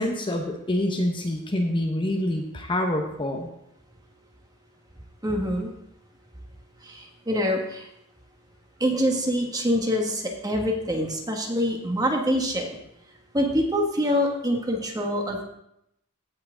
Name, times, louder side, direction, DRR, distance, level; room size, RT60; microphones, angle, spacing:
voice 1, 0.0-3.5, left 1 dB, 25° left, 2 dB, 0.9 m, -26 dB
voice 2, 5.2-5.7 6.9-7.9 8.8-12.8 13.3-15.4, equal, 20° right, 1 dB, 1.4 m, -25 dB
15.5 x 5.7 x 3.8 m, 0.79 s
head